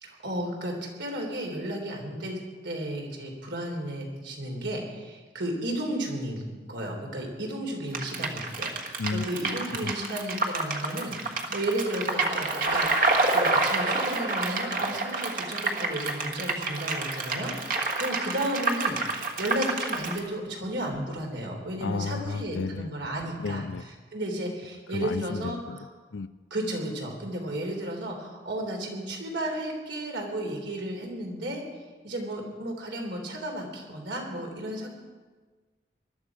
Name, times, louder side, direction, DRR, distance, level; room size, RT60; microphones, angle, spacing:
voice 1, 0.0-2.4 2.6-23.6 24.1-25.6 26.5-31.6 32.0-34.9, right 1 dB, 80° right, 1 dB, 3.6 m, -33 dB
sound 1, 7.9-20.2, right 3 dB, 45° right, 1.5 m, -28 dB
voice 2, 9.0-9.5 9.8-9.9 21.8-23.1 23.4-23.8 24.9-26.3, left 4 dB, 80° left, 13 dB, 0.5 m, -33 dB
20.5 x 12.5 x 5.0 m, 1.4 s
head